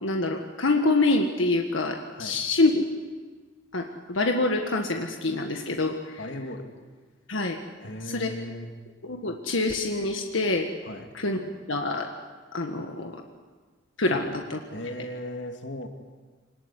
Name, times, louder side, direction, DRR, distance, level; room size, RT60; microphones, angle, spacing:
voice 1, 0.0-2.8 3.7-6.2 7.3-7.6 8.0-8.3 9.0-10.7 11.1-11.4 11.7-12.1 12.5-13.2 14.0-14.6, left 2 dB, 90° left, 3 dB, 1.6 m, -26 dB
voice 2, 6.2-6.7 7.8-8.7 10.8-11.1 14.1-14.4 14.7-15.9, left 1 dB, 65° left, 5 dB, 2.5 m, -37 dB
25.0 x 19.0 x 9.9 m, 1.4 s
head